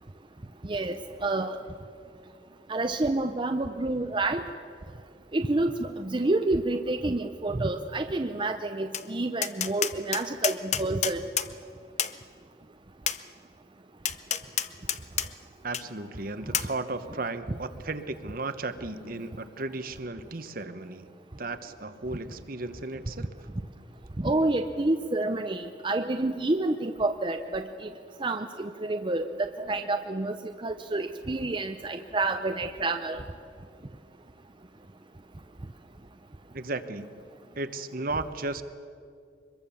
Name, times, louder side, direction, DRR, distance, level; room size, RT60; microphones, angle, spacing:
voice 1, 0.6-1.6 2.7-4.4 5.3-11.2 24.2-27.9 28.2-30.4 30.6-33.2, right 2 dB, 25° right, 6 dB, 0.7 m, -28 dB
Tap, 8.9-9.1 9.4-11.5 12.0-12.1 13.1-13.2 14.0-15.3 15.7-15.8 16.5-16.7, left 9 dB, 40° left, 0.7 m, -28 dB
voice 2, 15.6-21.1 21.4-23.3 36.5-37.1 37.6-38.6, right 2 dB, 50° right, 10 dB, 1.1 m, -35 dB
24.5 x 22.0 x 7.1 m, 2.3 s
head